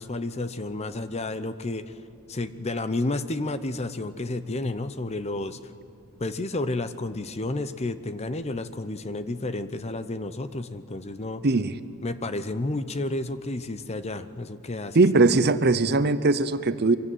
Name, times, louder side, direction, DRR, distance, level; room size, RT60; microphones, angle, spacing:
voice 1, 0.0-1.9 2.3-5.6 6.2-11.5 12.0-15.0, left 2 dB, 30° left, 11 dB, 0.7 m, -31 dB
voice 2, 11.4-11.7 14.9-17.0, right 3 dB, 45° right, 13 dB, 0.7 m, -20 dB
24.0 x 16.0 x 9.1 m, 2.4 s
head